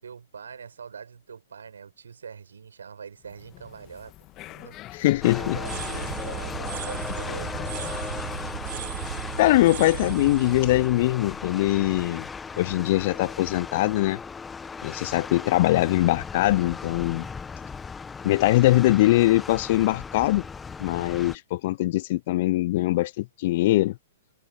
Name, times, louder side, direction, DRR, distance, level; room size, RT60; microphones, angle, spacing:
voice 1, 0.0-4.1 4.5-4.8 5.4-7.9, right 6 dB, 70° right, 6.1 m, -43 dB
sound 1, 3.2-8.6, left 16 dB, 30° left, 2.0 m, -43 dB
voice 2, 4.9-5.6 9.4-12.3 12.6-14.2 14.8-17.3 18.2-20.5 20.8-24.0, left 17 dB, 45° left, 0.4 m, -22 dB
sound 2, 5.2-21.4, left 5 dB, 10° left, 1.1 m, -37 dB
sound 3, 5.4-12.3, right 13 dB, 50° right, 1.7 m, -36 dB
figure-of-eight pair, 110°, 0 cm